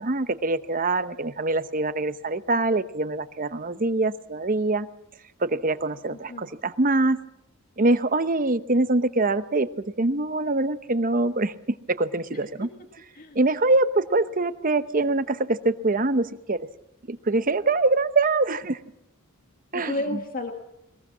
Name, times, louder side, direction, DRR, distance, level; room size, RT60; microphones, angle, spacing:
voice 1, 0.0-4.9 5.4-7.2 7.8-11.5 11.9-12.7 13.3-16.7 17.1-18.8 19.7-20.0, right 2 dB, 40° right, 12 dB, 0.9 m, -24 dB
voice 2, 6.1-6.5 12.3-12.7 13.1-13.4 19.7-20.5, left 1 dB, 40° left, 4 dB, 1.9 m, -33 dB
21.5 x 21.0 x 7.3 m, 0.82 s
head